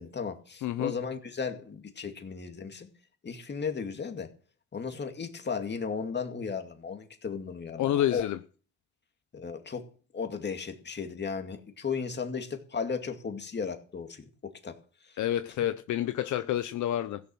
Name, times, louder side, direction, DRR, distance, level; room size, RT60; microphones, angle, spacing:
voice 1, 0.0-2.9 3.2-4.3 4.7-8.3 9.3-9.9 10.1-14.8 15.0-15.1, left 5 dB, 35° left, 2.3 m, -35 dB
voice 2, 0.6-0.9 7.8-8.4 15.2-17.2, left 12 dB, 75° left, 0.8 m, -28 dB
15.5 x 7.1 x 6.2 m
cardioid pair, 90°, 30 cm